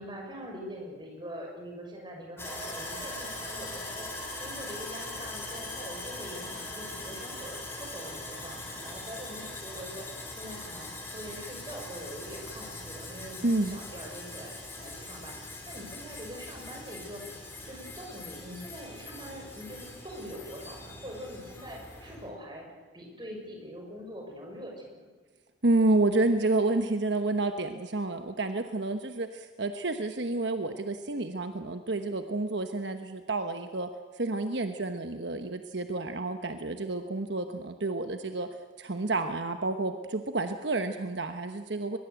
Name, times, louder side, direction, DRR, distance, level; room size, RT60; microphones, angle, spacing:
voice 1, 0.0-17.2 17.6-22.7 22.9-25.1, equal, 25° right, 1 dB, 6.0 m, -43 dB
Sawing, 2.4-22.3, left 2 dB, 15° left, 4.3 m, -41 dB
voice 2, 13.4-13.8 25.6-33.9 34.1-38.5 38.8-42.0, right 2 dB, 65° right, 7 dB, 1.2 m, -29 dB
22.5 x 21.5 x 8.1 m, 1.4 s
head